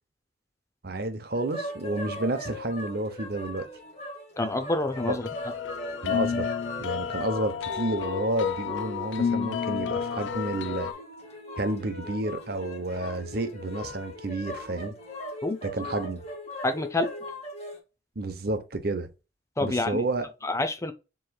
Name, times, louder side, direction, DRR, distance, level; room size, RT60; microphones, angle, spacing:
voice 1, 0.8-3.7 5.1-5.2 6.0-6.5 6.8-10.9 11.6-14.9 15.6-16.2 18.2-19.1 19.6-20.3, right 2 dB, 55° right, 0.8 m, -30 dB
sound 1, 1.3-17.8, left 1 dB, 35° left, 1.6 m, -40 dB
voice 2, 4.4-5.3 15.4-15.6 16.6-17.1 19.6-20.0 20.4-20.9, left 2 dB, 15° left, 0.5 m, -27 dB
sound 2, 4.7-10.9, left 7 dB, 85° left, 0.4 m, -31 dB
7.3 x 3.1 x 2.3 m
head